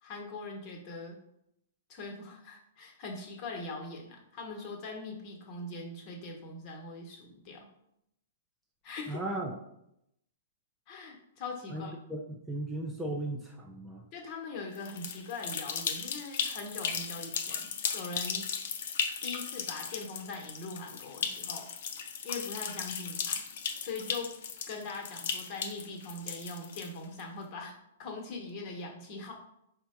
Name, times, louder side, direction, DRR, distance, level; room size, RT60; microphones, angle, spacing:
voice 1, 0.0-1.2 1.9-7.7 8.8-9.2 10.9-11.9 14.1-18.6 19.2-21.7 22.2-23.5 23.8-29.3, left 3 dB, 40° left, 1 dB, 1.1 m, -41 dB
voice 2, 9.1-9.6 11.7-14.1, right 1 dB, 5° right, -1 dB, 0.5 m, -36 dB
sound 1, 14.7-27.2, left 7 dB, 60° left, 0.5 m, -36 dB
4.3 x 2.2 x 4.3 m, 0.78 s
hypercardioid pair, 125°, 0 cm